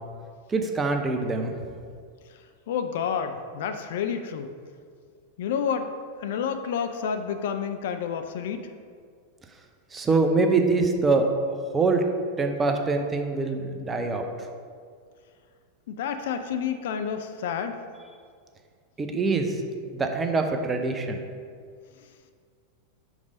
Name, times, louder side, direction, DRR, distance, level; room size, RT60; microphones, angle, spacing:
voice 1, 0.5-1.5 9.9-11.3 11.7-12.0 12.4-14.3 19.0-19.6 19.9-21.2, right 3 dB, 15° right, 4 dB, 0.6 m, -24 dB
voice 2, 2.7-4.5 5.4-5.9 6.2-8.7 15.9-17.8, left 7 dB, 55° left, 8 dB, 0.4 m, -29 dB
5.3 x 4.8 x 5.0 m, 2.1 s
figure-of-eight pair, 90°, 0 cm